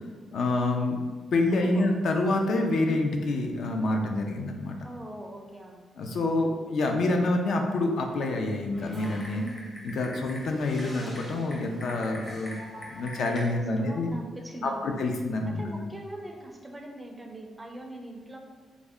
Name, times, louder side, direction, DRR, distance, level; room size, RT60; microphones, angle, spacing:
voice 1, 0.3-1.1 1.3-4.8 6.0-9.4 9.8-14.1 14.6-15.7, left 2 dB, 65° left, 3 dB, 0.4 m, -27 dB
voice 2, 1.5-1.9 4.8-5.9 9.3-9.8 13.6-15.1 15.4-18.4, right 1 dB, 10° right, 2 dB, 0.4 m, -42 dB
Typing, 8.7-13.5, left 1 dB, 35° left, 0.8 m, -42 dB
3.6 x 2.1 x 3.5 m, 1.4 s
cardioid pair, 135°, 0 cm